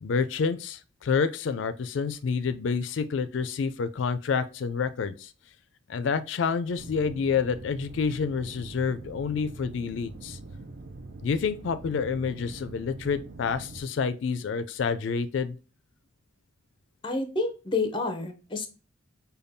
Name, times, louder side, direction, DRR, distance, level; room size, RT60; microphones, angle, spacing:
voice 1, 0.0-5.3 5.9-10.4 11.2-15.6, left 5 dB, 70° left, 0.4 m, -28 dB
sound 1, 6.8-13.8, right 2 dB, 55° right, 0.4 m, -43 dB
voice 2, 17.0-18.7, left 3 dB, 25° left, 0.6 m, -29 dB
5.1 x 2.3 x 2.6 m
head